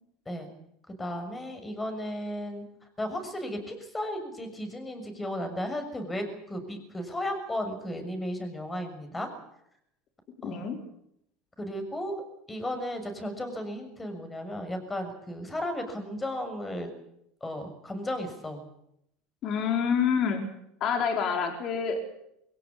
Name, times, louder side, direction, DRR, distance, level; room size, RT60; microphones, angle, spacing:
voice 1, 0.9-2.7 3.0-9.3 10.4-10.7 11.6-12.2 12.5-16.9 17.4-18.6, left 1 dB, 15° left, 7 dB, 6.5 m, -34 dB
voice 2, 10.4-10.8 19.4-20.4 20.8-22.0, left 6 dB, 50° left, 4 dB, 4.7 m, -27 dB
23.0 x 17.0 x 8.8 m, 0.76 s
supercardioid pair, 105°, 0 cm